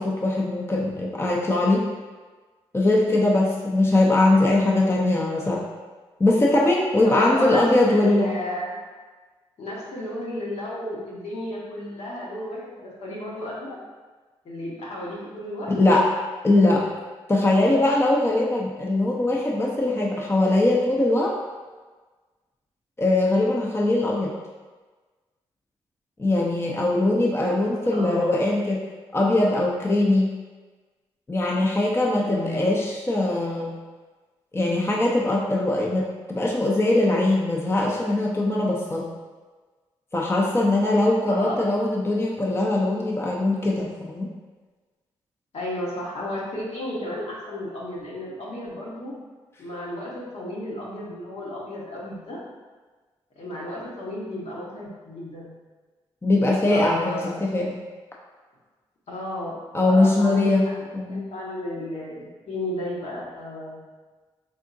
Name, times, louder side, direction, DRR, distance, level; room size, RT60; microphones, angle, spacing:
voice 1, 0.0-1.8 2.7-5.6 6.2-8.3 15.7-16.1 16.4-16.9 17.3-21.4 23.0-24.3 26.2-28.8 29.1-30.3 31.3-33.8 34.5-39.1 40.1-44.3 56.2-57.8 59.7-60.6 60.9-61.2, left 2 dB, 20° left, -3 dB, 0.6 m, -21 dB
voice 2, 3.1-3.5 7.0-8.7 9.6-13.7 14.4-15.7 17.5-17.8 27.9-28.3 32.2-32.7 41.3-41.6 45.5-49.1 49.6-52.4 53.4-55.5 56.7-57.3 59.1-59.5 59.8-60.5 60.8-63.8, left 1 dB, 65° left, -6 dB, 1.1 m, -33 dB
3.6 x 3.5 x 2.6 m, 1.3 s
supercardioid pair, 45°, 12 cm